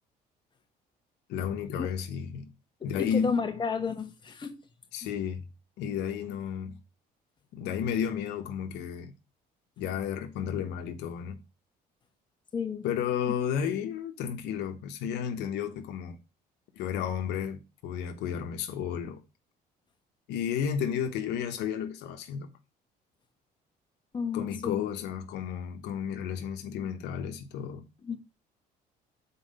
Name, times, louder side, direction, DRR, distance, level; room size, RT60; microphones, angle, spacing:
voice 1, 1.3-2.5 2.8-3.4 4.9-5.4 5.8-6.8 7.5-9.1 9.8-11.4 12.8-16.2 16.8-19.2 20.3-22.5 24.3-27.9, left 8 dB, 85° left, 1.0 m, -32 dB
voice 2, 2.8-4.5 5.0-5.1 12.5-12.9 13.3-13.4 24.1-24.8 28.0-28.2, left 5 dB, 25° left, 1.3 m, -32 dB
5.6 x 4.5 x 5.3 m
cardioid pair, 110°, 17 cm